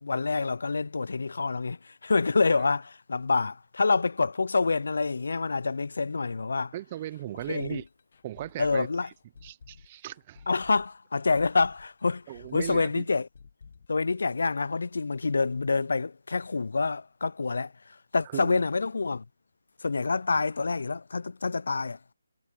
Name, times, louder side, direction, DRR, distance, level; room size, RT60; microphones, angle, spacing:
voice 1, 0.0-6.7 7.5-7.8 8.6-9.1 10.5-12.2 12.5-13.3 13.9-17.7 18.1-19.2 19.8-22.0, left 4 dB, 70° left, 0.4 m, -27 dB
voice 2, 6.7-7.8 8.2-8.9 9.4-10.4 12.3-13.1 18.3-18.6, right 14 dB, 25° right, 0.7 m, -37 dB
sound 1, 7.1-14.9 15.1-15.2 15.6-15.7, left 5 dB, 50° left, 1.2 m, -53 dB
figure-of-eight pair, 160°, 0 cm